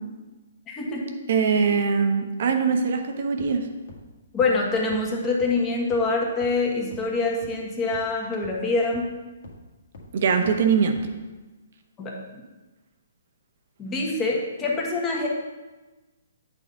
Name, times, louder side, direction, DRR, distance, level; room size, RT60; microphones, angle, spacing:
voice 1, 0.7-1.1 4.3-9.1 12.0-12.4 13.8-15.3, left 3 dB, 20° left, -1 dB, 1.5 m, -25 dB
voice 2, 1.3-3.6 10.1-11.0, right 6 dB, 60° right, 6 dB, 1.0 m, -22 dB
sound 1, 3.4-3.5 3.9-4.0 4.4-4.5 4.9-5.0 5.4-5.5 5.9-6.0 6.4-6.5 6.9-7.0 7.4-7.5 7.9-8.0 8.4-8.5 8.9-9.0 9.4-9.5 9.9-10.0 10.4-10.5 10.9-11.0, left 4 dB, 65° left, 1.7 m, -43 dB
8.4 x 4.1 x 5.5 m, 1.2 s
hypercardioid pair, 140°, 0 cm